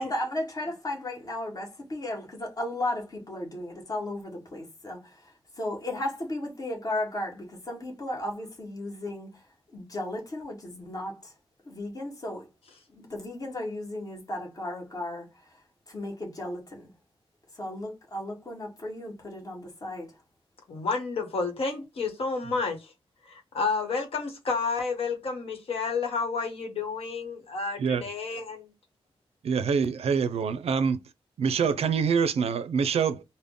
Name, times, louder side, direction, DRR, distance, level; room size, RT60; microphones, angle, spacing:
voice 1, 0.0-9.4 9.7-11.3 11.6-12.5 12.9-16.9 17.5-20.2, left 1 dB, 35° left, 1.4 m, -35 dB
voice 2, 20.7-22.9 23.2-28.7, left 4 dB, 70° left, 1.1 m, -30 dB
voice 3, 29.4-31.0 31.4-33.2, right 6 dB, 80° right, 0.4 m, -25 dB
3.5 x 2.1 x 3.7 m
wide cardioid pair, 165°, 10 cm